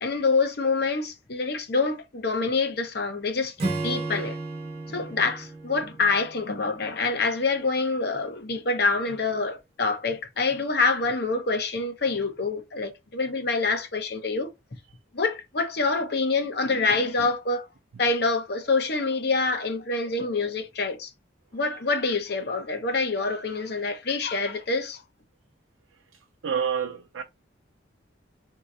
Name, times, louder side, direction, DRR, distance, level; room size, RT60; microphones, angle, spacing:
voice 1, 0.0-4.4 4.9-14.5 15.1-17.7 18.0-21.1 21.5-25.0, left 3 dB, 55° left, 0.8 m, -26 dB
Acoustic guitar / Strum, 3.6-7.1, right 2 dB, 30° right, 1.3 m, -34 dB
voice 2, 26.4-27.2, right 7 dB, 85° right, 0.5 m, -28 dB
3.7 x 2.9 x 3.9 m
head